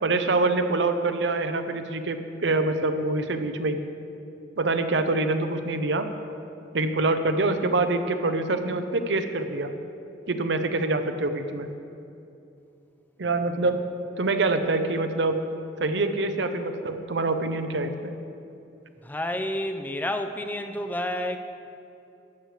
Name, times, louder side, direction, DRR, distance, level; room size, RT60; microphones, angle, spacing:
voice 1, 0.0-3.8 4.6-6.1 6.7-9.7 10.3-11.7 13.2-13.8 14.2-15.4 15.8-18.1, right 2 dB, 70° right, 8 dB, 0.7 m, -25 dB
voice 2, 19.0-21.4, left 1 dB, 10° left, 7 dB, 0.4 m, -29 dB
12.5 x 4.9 x 8.2 m, 2.7 s
head